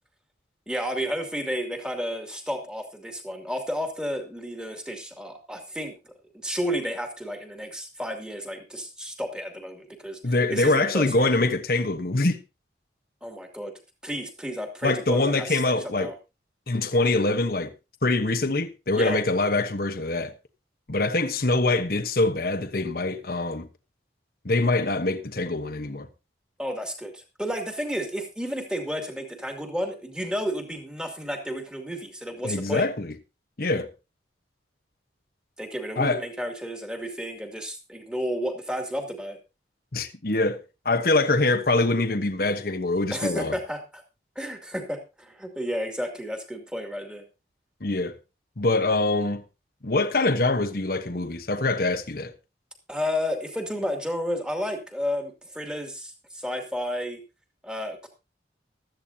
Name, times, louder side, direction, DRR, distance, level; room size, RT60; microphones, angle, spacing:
voice 1, 0.7-10.2 10.5-11.3 13.2-13.7 14.0-16.1 18.9-19.2 26.6-32.8 35.6-39.4 43.1-44.0 44.4-47.2 52.9-57.2 57.6-58.1, equal, 5° right, 2.6 m, -32 dB
voice 2, 10.2-12.4 14.8-16.1 16.7-17.7 18.0-20.3 20.9-23.7 24.4-26.1 32.4-33.1 33.6-33.9 36.0-36.2 39.9-43.5 47.8-48.2 48.6-49.4 49.8-52.3, left 2 dB, 50° left, 1.1 m, -24 dB
16.0 x 13.0 x 2.8 m
head